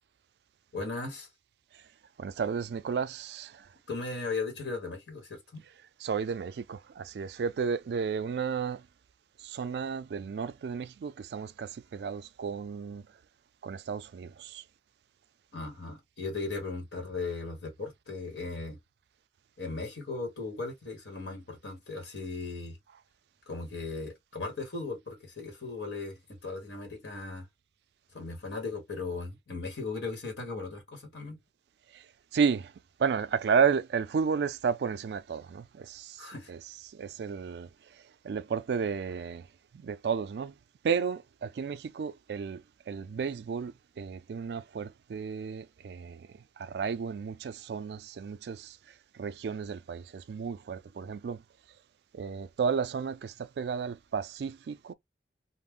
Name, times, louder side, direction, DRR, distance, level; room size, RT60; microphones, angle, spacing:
voice 1, 0.7-1.3 3.9-5.6 15.5-18.8 19.6-22.8 23.5-27.5 28.1-31.4 36.2-36.5, left 3 dB, 75° left, 1.1 m, -37 dB
voice 2, 2.2-3.7 6.0-8.9 9.4-13.1 13.6-14.6 31.9-32.1 32.3-32.7 33.0-36.6 36.9-39.5 39.7-40.5 40.8-48.8 49.1-51.4 52.1-54.9, right 6 dB, 70° right, 0.3 m, -33 dB
2.5 x 2.0 x 3.4 m
head